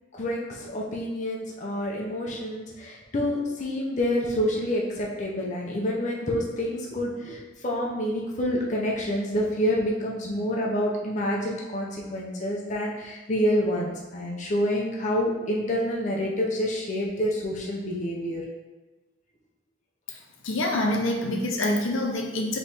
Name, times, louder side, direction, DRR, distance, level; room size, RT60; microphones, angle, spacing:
voice 1, 0.1-18.4, equal, 35° left, -3 dB, 0.6 m, -28 dB
voice 2, 20.4-22.6, left 1 dB, 75° left, 0 dB, 0.7 m, -26 dB
4.1 x 3.1 x 3.4 m, 1.2 s
head